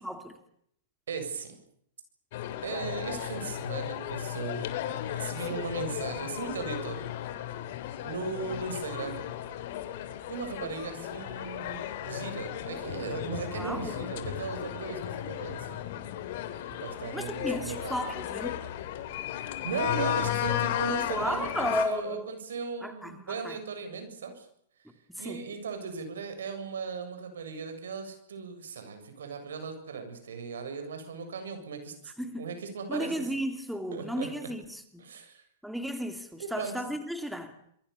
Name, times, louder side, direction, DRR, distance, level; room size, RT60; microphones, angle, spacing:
voice 1, 0.0-0.4 10.6-11.0 13.5-14.0 17.1-18.6 21.1-22.3 22.8-23.6 25.2-25.4 32.2-32.5 32.9-35.0 35.6-37.5, equal, ahead, 7 dB, 2.6 m, -34 dB
voice 2, 1.1-1.5 2.6-4.7 5.1-7.0 8.0-9.3 10.3-15.8 16.8-18.1 19.6-24.5 25.2-33.1 33.9-34.5 35.0-35.4 36.4-36.7, right 5 dB, 80° right, 7 dB, 7.6 m, -37 dB
sound 1, 2.3-21.9, left 11 dB, 55° left, 3.4 m, -35 dB
28.0 x 22.5 x 7.1 m, 0.69 s
hypercardioid pair, 130°, 0 cm